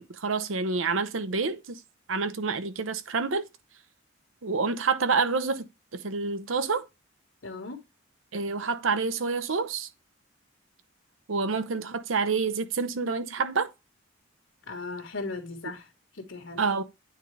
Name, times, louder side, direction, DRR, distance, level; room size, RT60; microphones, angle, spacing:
voice 1, 0.0-1.8 2.1-3.4 4.4-5.6 5.9-6.9 8.3-9.9 11.3-13.7 16.6-16.8, right 4 dB, 80° right, 0.8 m, -28 dB
voice 2, 7.4-7.8 14.7-15.8 16.2-16.6, left 3 dB, 75° left, 1.5 m, -37 dB
9.1 x 3.8 x 3.2 m
head